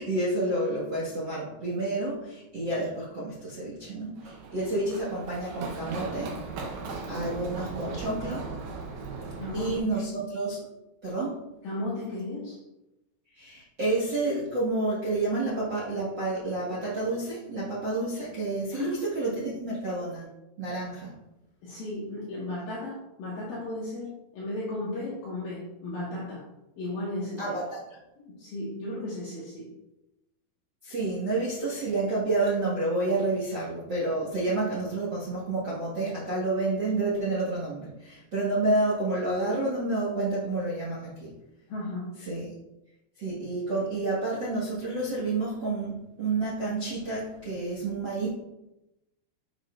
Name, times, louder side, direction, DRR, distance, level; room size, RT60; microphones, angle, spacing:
voice 1, 0.0-6.3 7.1-8.5 9.5-10.6 11.0-11.4 13.3-20.3 20.6-21.2 27.4-27.8 30.8-41.4 42.2-42.5 43.2-48.3, right 2 dB, 50° right, -7 dB, 1.3 m, -29 dB
Run, 4.2-9.8, right 4 dB, 75° right, 2.9 m, -37 dB
voice 2, 9.4-10.0 11.6-12.6 18.7-19.4 21.6-26.5 26.8-27.6 28.2-29.7 41.7-42.1, left 2 dB, 65° left, -7 dB, 2.8 m, -35 dB
7.8 x 6.7 x 2.5 m, 0.92 s
omnidirectional pair, 4.8 m